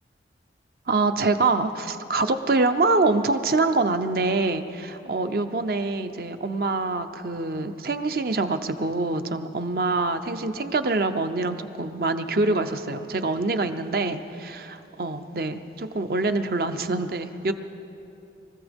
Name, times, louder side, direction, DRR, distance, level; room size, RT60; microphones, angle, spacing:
voice 1, 0.9-17.5, right 3 dB, 55° right, 8 dB, 0.6 m, -25 dB
24.0 x 14.5 x 3.6 m, 2.9 s
head